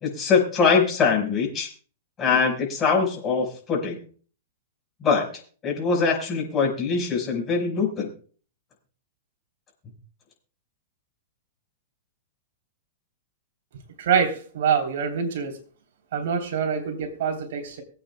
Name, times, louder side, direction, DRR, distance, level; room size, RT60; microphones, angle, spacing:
voice 1, 0.0-1.7 2.2-4.0 5.0-5.3 5.6-8.1, left 5 dB, 25° left, 0 dB, 5.2 m, -22 dB
voice 2, 14.0-15.6 16.1-17.8, right 7 dB, 65° right, 3 dB, 3.5 m, -25 dB
24.0 x 8.7 x 2.3 m, 0.41 s
hypercardioid pair, 135°, 0 cm